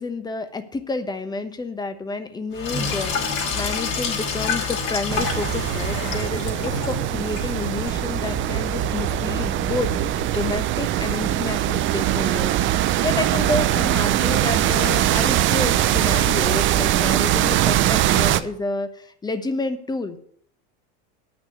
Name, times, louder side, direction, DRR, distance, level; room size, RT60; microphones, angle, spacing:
voice 1, 0.0-3.1 3.5-9.9 10.3-20.2, left 3 dB, 15° left, 10 dB, 1.0 m, -29 dB
Sink (filling or washing), 2.5-10.4, left 5 dB, 45° left, 3.0 m, -29 dB
sound 1, 5.1-18.4, right 13 dB, 40° right, 0.6 m, -22 dB
9.0 x 6.1 x 8.0 m, 0.66 s
supercardioid pair, 125°, 30 cm